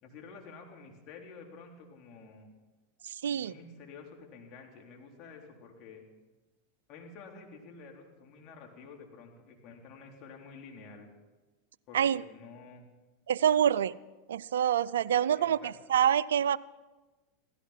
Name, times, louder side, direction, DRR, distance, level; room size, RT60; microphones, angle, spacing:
voice 1, 0.0-2.5 3.3-6.1 6.9-11.1 11.9-12.9 15.3-15.7, left 4 dB, 50° left, 1 dB, 3.7 m, -50 dB
voice 2, 3.0-3.5 11.9-12.2 13.3-14.0 14.3-16.6, right 9 dB, 80° right, 19 dB, 0.4 m, -26 dB
16.5 x 15.0 x 5.8 m, 1.2 s
hypercardioid pair, 95°, 0 cm